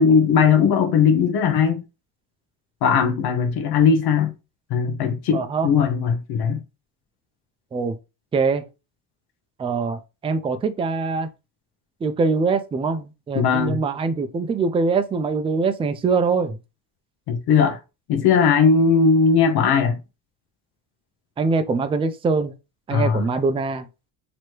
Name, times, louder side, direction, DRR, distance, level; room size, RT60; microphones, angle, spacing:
voice 1, 0.0-1.8 2.8-4.3 4.7-6.6 13.3-13.8 17.3-17.8 18.1-20.0 22.9-23.2, left 6 dB, 65° left, 0.9 m, -18 dB
voice 2, 5.3-5.7 7.7-7.9 8.3-8.6 9.6-11.3 12.0-16.6 21.4-22.5 22.9-23.8, right 4 dB, 15° right, 0.4 m, -23 dB
3.0 x 3.0 x 4.5 m
cardioid pair, 115°, 40 cm